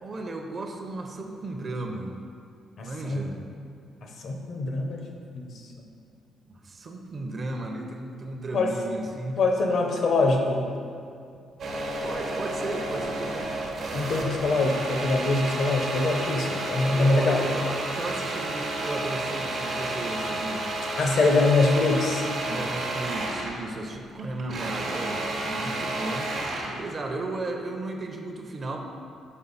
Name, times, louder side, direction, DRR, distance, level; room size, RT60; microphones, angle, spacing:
voice 1, 0.0-2.2 2.8-3.4 6.4-9.4 12.0-13.5 16.9-20.7 22.4-26.3 26.6-28.8, right 2 dB, 40° right, 3 dB, 0.7 m, -34 dB
voice 2, 2.8-3.2 4.2-5.0 5.4-5.5 8.5-8.7 9.4-10.7 13.9-17.4 21.0-22.2, left 3 dB, 60° left, 2 dB, 0.8 m, -23 dB
sound 1, 11.6-23.6 23.9-26.8, right 2 dB, 65° right, 1.1 m, -31 dB
5.5 x 5.3 x 4.0 m, 2.5 s
cardioid pair, 90°, 0 cm